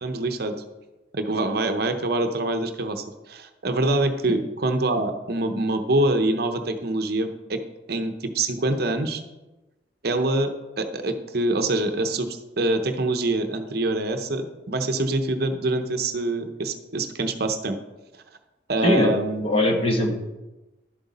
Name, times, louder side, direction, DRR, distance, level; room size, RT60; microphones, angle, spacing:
voice 1, 0.0-0.6 1.1-7.6 7.9-9.2 10.0-17.8 18.7-19.5, right 2 dB, 55° right, 7 dB, 0.8 m, -25 dB
voice 2, 19.4-20.1, left 1 dB, 30° left, 2 dB, 1.3 m, -20 dB
11.5 x 7.8 x 4.1 m, 1.1 s
head